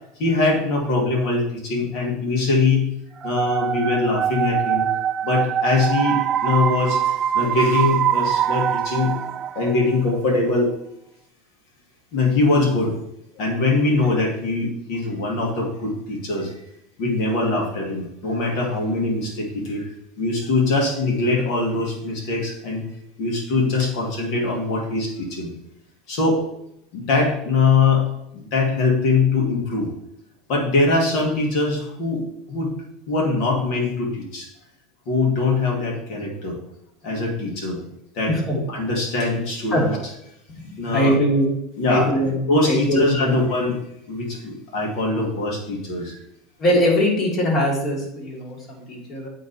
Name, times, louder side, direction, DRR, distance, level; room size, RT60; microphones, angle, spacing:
voice 1, 0.2-2.9 3.2-4.9 5.2-9.2 9.5-10.7 12.1-13.0 13.4-16.5 17.0-19.9 20.2-22.8 23.2-25.5 26.1-26.4 26.9-28.1 28.3-29.9 30.5-32.7 33.1-34.5 35.1-36.6 37.0-37.8 38.1-38.3 38.7-39.9 40.8-41.1 41.8-42.1 42.5-43.8 44.1-46.2, left 3 dB, 60° left, -1 dB, 2.4 m, -22 dB
sound 1, 3.2-10.0, right 9 dB, 35° right, 0.3 m, -23 dB
voice 2, 38.3-38.6 39.7-39.8 40.6-41.5 41.8-43.4 46.6-49.3, equal, 40° left, -2 dB, 2.9 m, -22 dB
8.6 x 3.8 x 4.3 m, 0.79 s
supercardioid pair, 100°, 0 cm